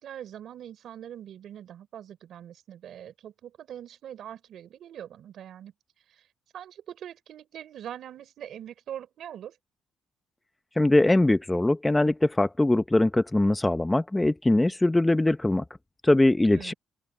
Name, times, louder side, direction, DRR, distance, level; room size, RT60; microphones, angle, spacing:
voice 1, 0.0-6.3 6.5-9.6 16.5-16.7, right 10 dB, 70° right, 4.0 m, -43 dB
voice 2, 10.8-15.6 16.0-16.7, left 2 dB, 15° left, 0.9 m, -22 dB
open air
cardioid pair, 90°, 0 cm